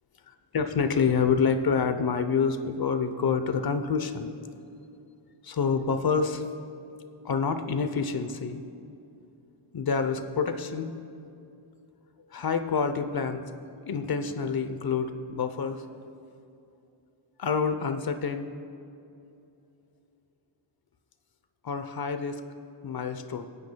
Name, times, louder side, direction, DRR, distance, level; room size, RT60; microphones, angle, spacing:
voice 1, 0.5-4.3 5.4-6.5 7.2-8.6 9.7-10.9 12.3-13.5 13.8-15.9 17.4-18.5 21.6-22.4 22.8-23.4, left 5 dB, 45° left, 9 dB, 0.8 m, -27 dB
24.0 x 9.6 x 2.3 m, 2.7 s
wide cardioid pair, 105°, 50 cm